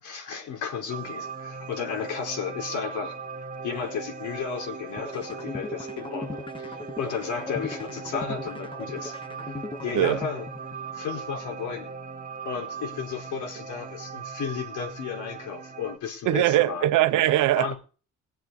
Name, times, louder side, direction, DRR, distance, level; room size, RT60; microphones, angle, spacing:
voice 1, 0.0-3.1 3.6-9.5 9.8-10.5 10.9-11.9 12.4-16.9 17.6-17.8, left 6 dB, 75° left, 4.6 m, -33 dB
sound 1, 0.9-16.0, right 5 dB, 25° right, 1.8 m, -39 dB
sound 2, 5.0-11.0, left 3 dB, 15° left, 0.9 m, -38 dB
voice 2, 16.3-17.7, right 14 dB, 90° right, 1.1 m, -21 dB
19.5 x 7.7 x 5.4 m
cardioid pair, 90°, 30 cm